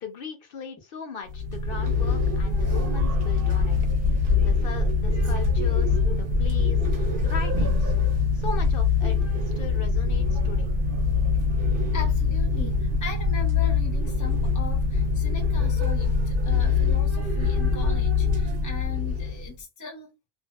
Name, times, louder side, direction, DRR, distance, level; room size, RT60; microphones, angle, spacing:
voice 1, 0.0-3.7 4.4-6.8 7.2-7.9 8.3-10.7, left 6 dB, 55° left, 0.7 m, -38 dB
sound 1, 1.3-19.5, left 4 dB, 50° right, 0.9 m, -23 dB
voice 2, 10.3-10.6 11.9-20.1, left 4 dB, 20° left, 0.5 m, -39 dB
2.6 x 2.3 x 2.2 m
omnidirectional pair, 1.3 m